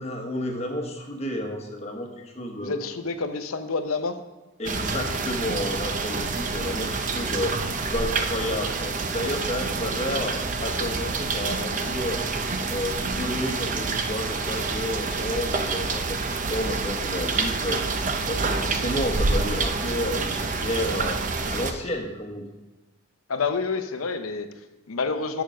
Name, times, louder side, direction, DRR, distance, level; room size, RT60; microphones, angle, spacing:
voice 1, 0.0-2.7 4.6-12.2 12.7-18.0 18.3-21.2 21.5-22.5, left 1 dB, 30° left, 2 dB, 1.1 m, -31 dB
voice 2, 2.5-4.2 23.3-25.4, left 4 dB, 85° left, 8 dB, 0.8 m, -28 dB
sound 1, 4.6-21.7, right 3 dB, 35° right, 0.6 m, -27 dB
6.9 x 6.7 x 6.2 m, 1.1 s
head